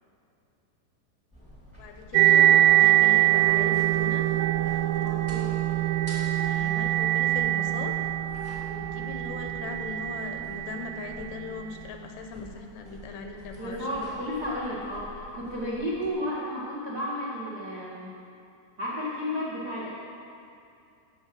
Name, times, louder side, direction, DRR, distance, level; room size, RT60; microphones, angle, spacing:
sound 1, 1.3-16.1, equal, 5° right, 0.9 m, -48 dB
voice 1, 1.8-4.3 4.6-5.4 6.4-8.0 8.7-14.0, left 4 dB, 80° left, 4 dB, 2.8 m, -39 dB
sound 2, 2.1-11.7, right 15 dB, 90° right, 2.8 m, -23 dB
voice 2, 5.0-5.5 13.6-18.1 18.8-19.9, equal, 70° right, -7 dB, 0.9 m, -32 dB
11.5 x 6.1 x 7.6 m, 2.5 s
omnidirectional pair, 4.9 m